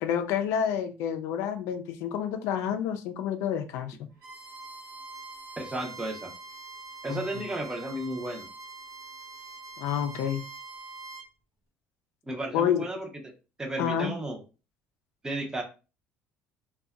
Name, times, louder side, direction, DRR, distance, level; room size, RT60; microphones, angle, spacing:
voice 1, 0.0-4.0 7.1-7.2 9.8-10.4 12.5-12.9 13.8-14.1, left 9 dB, 80° left, 8 dB, 0.3 m, -29 dB
Bowed string instrument, 4.2-11.3, right 3 dB, 85° right, 0.9 m, -44 dB
voice 2, 5.6-6.3 7.0-8.5 12.3-13.3 13.6-14.4 15.2-15.6, right 1 dB, 15° right, 2 dB, 0.6 m, -33 dB
2.6 x 2.2 x 2.3 m, 0.32 s
cardioid pair, 125°, 5 cm